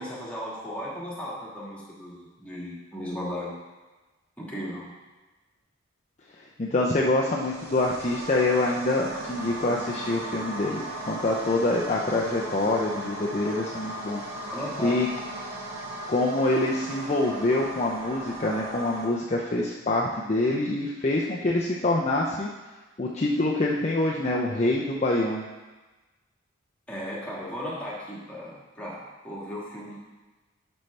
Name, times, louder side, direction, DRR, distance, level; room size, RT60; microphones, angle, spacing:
voice 1, 0.0-3.5 4.4-4.9 14.5-15.0 26.9-30.0, equal, 5° left, -7 dB, 1.6 m, -36 dB
voice 2, 6.4-14.2 14.8-15.1 16.1-22.5 23.0-25.4, left 2 dB, 30° left, -2 dB, 0.5 m, -25 dB
sound 1, 7.2-19.1, right 1 dB, 85° right, 1.3 m, -37 dB
10.5 x 5.4 x 3.3 m, 1.2 s
head